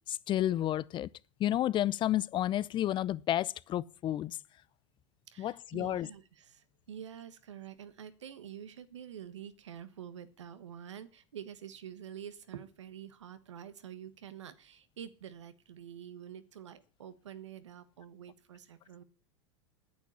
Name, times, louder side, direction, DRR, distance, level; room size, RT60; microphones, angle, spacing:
voice 1, 0.1-1.1 1.4-4.4 5.4-6.1, left 12 dB, 35° left, 0.5 m, -31 dB
voice 2, 5.3-19.0, right 9 dB, 90° right, 1.5 m, -47 dB
9.5 x 8.5 x 9.8 m
hypercardioid pair, 110°, 15 cm